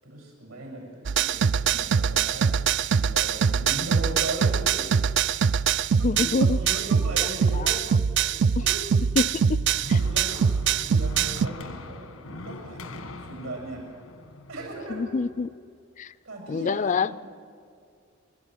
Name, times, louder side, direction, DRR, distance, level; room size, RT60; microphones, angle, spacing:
voice 1, 0.0-2.5 2.8-4.7 6.0-6.2 6.6-7.8 8.6-8.8 10.0-13.8 14.5-15.1 16.2-17.1, right 2 dB, 90° right, 1 dB, 6.5 m, -38 dB
sound 1, 1.1-11.5, right 7 dB, 60° right, 0.4 m, -23 dB
voice 2, 6.0-6.6 7.5-7.7 8.6-8.7 9.2-9.6 9.9-10.0 14.9-15.5 16.0-16.1 16.5-17.1, left 4 dB, 35° left, 17 dB, 0.4 m, -26 dB
sound 2, 9.3-15.5, left 2 dB, 85° left, 1.6 m, -42 dB
26.5 x 12.0 x 9.1 m, 2.3 s
head